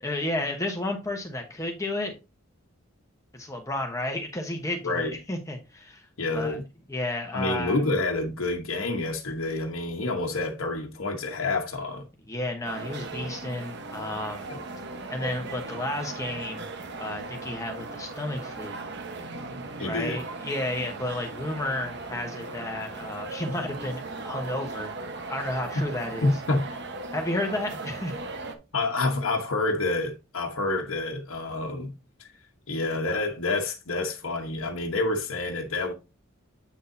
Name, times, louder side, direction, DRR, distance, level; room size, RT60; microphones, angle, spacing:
voice 1, 0.0-2.2 3.3-6.6 6.9-7.8 12.3-14.5 15.1-16.6 17.0-18.8 19.8-24.9 25.3-26.4 27.1-28.1, left 1 dB, 15° left, 1.1 m, -32 dB
voice 2, 4.8-5.1 6.2-6.6 7.3-12.0 14.5-14.6 19.8-20.2 26.2-26.7 28.7-31.9 32.2-32.3 32.7-35.9, left 2 dB, 80° left, 1.1 m, -28 dB
sound 1, 12.6-28.5, right 3 dB, 60° right, 1.1 m, -38 dB
8.3 x 6.3 x 2.7 m
head